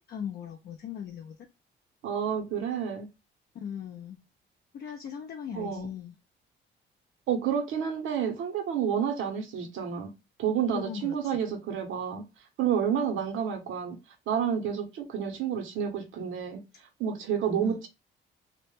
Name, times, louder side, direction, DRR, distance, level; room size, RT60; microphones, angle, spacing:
voice 1, 0.1-1.4 3.5-4.2 4.7-6.1 10.7-11.4 17.6-17.9, left 8 dB, 55° left, 0.4 m, -39 dB
voice 2, 2.0-3.1 5.5-5.9 7.3-10.1 10.4-12.3 12.6-14.0 14.3-16.6 17.0-17.9, right 8 dB, 80° right, 0.7 m, -29 dB
2.1 x 2.0 x 2.9 m
cardioid pair, 90°, 20 cm